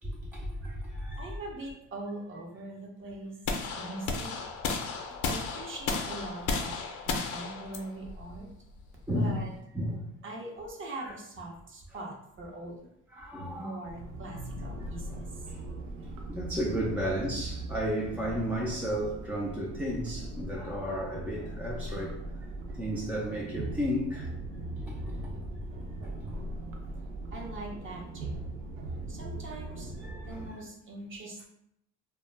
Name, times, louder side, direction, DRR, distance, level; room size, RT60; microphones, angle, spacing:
voice 1, 0.0-1.4 5.1-5.2 9.1-9.5 9.7-10.1 11.0-11.1 13.1-13.8 14.8-14.9 15.5-15.6 16.3-22.2 22.7-24.3 24.8-25.3 26.2-26.3 29.0-29.4 30.0-30.4, equal, 5° right, -3 dB, 0.3 m, -33 dB
voice 2, 1.2-3.4 3.8-4.4 5.2-8.5 9.1-9.5 10.2-12.9 13.5-15.4 22.7-22.8 25.7-26.0 27.3-28.4 29.1-29.9 30.3-31.4, right 2 dB, 30° right, 0 dB, 0.7 m, -42 dB
sound 1, 3.4-9.5, left 4 dB, 50° left, 0.6 m, -34 dB
sound 2, 13.9-30.5, right 2 dB, 90° right, 0.6 m, -40 dB
2.1 x 2.0 x 3.2 m, 0.75 s
supercardioid pair, 90°, 39 cm